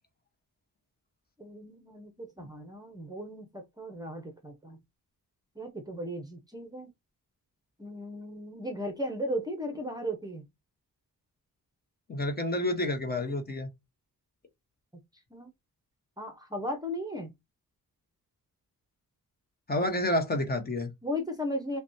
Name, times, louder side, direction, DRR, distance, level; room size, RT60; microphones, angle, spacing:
voice 1, 1.4-4.8 5.6-6.9 7.8-10.4 15.3-15.5 16.2-17.3 21.0-21.8, equal, 10° right, 0.8 m, -36 dB
voice 2, 12.1-13.7 19.7-20.9, left 1 dB, 25° left, 1.0 m, -29 dB
5.8 x 2.3 x 2.7 m
wide cardioid pair, 180°, 35 cm